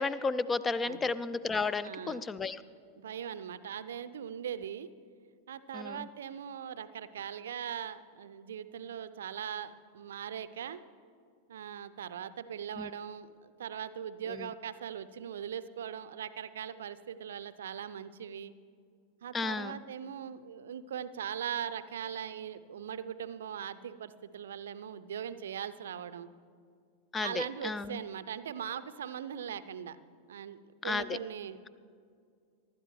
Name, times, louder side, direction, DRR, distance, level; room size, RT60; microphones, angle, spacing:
voice 1, 0.0-2.6 5.7-6.1 12.8-12.9 14.3-14.5 19.3-19.8 27.1-28.0 30.8-31.1, left 4 dB, 15° left, 16 dB, 0.5 m, -33 dB
voice 2, 1.8-2.2 3.0-4.9 5.5-10.8 11.5-18.5 19.2-26.3 27.2-30.0 30.3-30.6 30.8-31.6, right 8 dB, 65° right, 14 dB, 0.5 m, -40 dB
24.5 x 12.5 x 3.2 m, 2.3 s
figure-of-eight pair, 90°, 0 cm